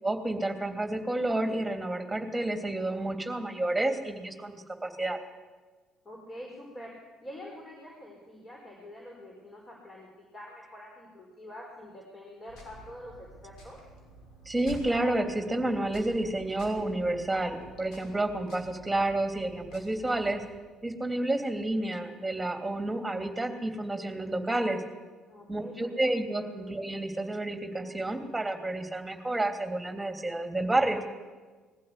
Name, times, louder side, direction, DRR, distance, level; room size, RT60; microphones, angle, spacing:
voice 1, 0.0-5.2 14.4-20.4 20.8-24.8 25.5-31.0, right 1 dB, 10° right, 5 dB, 3.1 m, -30 dB
voice 2, 6.0-6.9 7.2-13.8 25.3-26.5, left 1 dB, 30° left, -1 dB, 4.9 m, -46 dB
sound 1, 12.5-20.5, right 1 dB, 60° left, 6.1 m, -50 dB
21.0 x 15.0 x 8.4 m, 1.4 s
hypercardioid pair, 50°, 0 cm